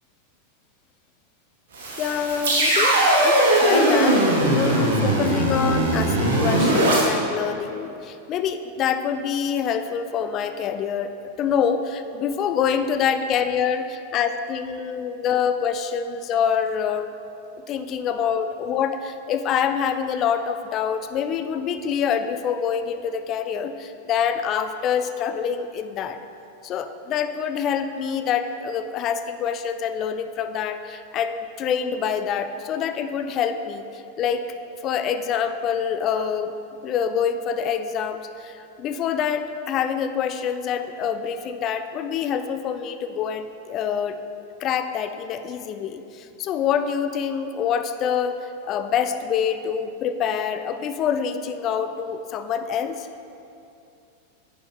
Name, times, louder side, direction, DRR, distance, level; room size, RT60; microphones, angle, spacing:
sound 1, 1.7-7.0, right 1 dB, 55° right, 1.3 m, -19 dB
voice 1, 2.0-3.0 3.2-11.1 11.4-17.1 17.7-26.2 26.6-34.5 34.8-36.5 36.8-44.2 44.6-48.4 48.6-53.1, left 7 dB, 35° left, 9 dB, 0.4 m, -26 dB
10.0 x 3.7 x 3.9 m, 2.7 s
figure-of-eight pair, 90°, 0 cm